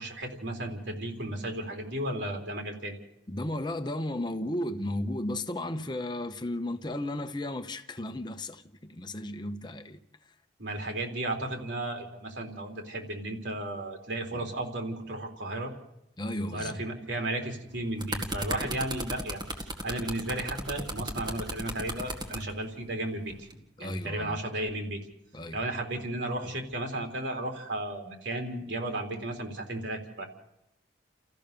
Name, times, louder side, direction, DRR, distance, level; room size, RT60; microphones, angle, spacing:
voice 1, 0.0-3.0 10.6-15.7 16.5-19.4 19.8-23.5 23.8-25.0 25.5-30.2, right 1 dB, 80° right, 3.8 m, -34 dB
voice 2, 3.3-10.3 16.2-16.9 18.6-18.7 23.8-24.4 25.3-25.6, left 1 dB, 25° left, 0.9 m, -34 dB
sound 1, 17.7-22.4 23.3-23.5, right 1 dB, 25° right, 1.9 m, -35 dB
30.0 x 14.5 x 6.9 m
head